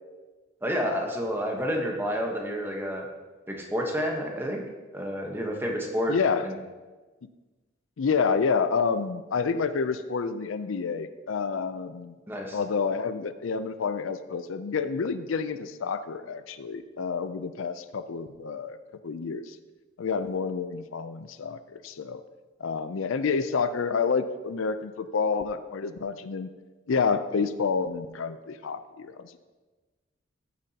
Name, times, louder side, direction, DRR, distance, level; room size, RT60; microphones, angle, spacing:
voice 1, 0.6-3.0 3.5-4.6 4.9-6.1 6.4-6.6 12.3-12.6, equal, 10° right, 1 dB, 1.1 m, -29 dB
voice 2, 6.1-6.5 8.0-12.2 12.5-18.8 19.0-19.6 20.0-22.2 22.6-26.5 26.9-29.4, left 5 dB, 80° left, 11 dB, 0.5 m, -28 dB
14.5 x 6.9 x 2.8 m, 1.3 s
head